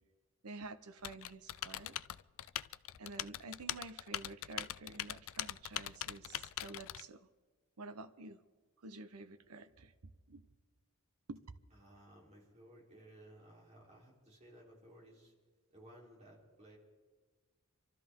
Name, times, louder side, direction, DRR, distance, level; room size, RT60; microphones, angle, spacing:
voice 1, 0.4-2.0 3.0-7.3 7.8-8.4 8.8-9.9 10.3-10.4 11.3-11.4, right 3 dB, 75° right, 0.8 m, -50 dB
Typing, 1.0-7.0, left 13 dB, 65° left, 0.4 m, -42 dB
voice 2, 11.7-15.3 15.7-16.8, right 1 dB, 30° right, 3.7 m, -58 dB
26.5 x 12.5 x 3.7 m
head